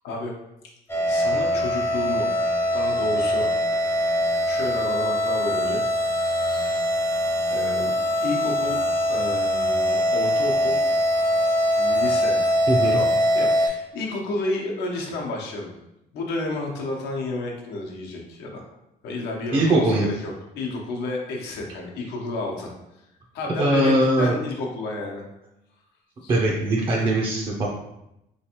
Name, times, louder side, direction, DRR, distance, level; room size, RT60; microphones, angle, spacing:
sound 1, 0.9-13.7, equal, 15° left, 0.5 m, -22 dB
voice 1, 1.1-2.3 2.7-3.5 4.4-5.8 6.1-6.8 7.5-7.9 8.2-8.8 9.1-10.8 11.8-12.4 12.9-15.7 16.1-18.6 19.0-22.7 23.3-25.2 26.2-26.4 26.8-27.1, left 2 dB, 80° left, -1 dB, 0.9 m, -31 dB
voice 2, 12.7-13.0 19.5-20.1 23.6-24.4 26.3-27.7, right 1 dB, 30° right, -3 dB, 0.5 m, -21 dB
3.4 x 3.1 x 2.9 m, 0.86 s
cardioid pair, 110°, 17 cm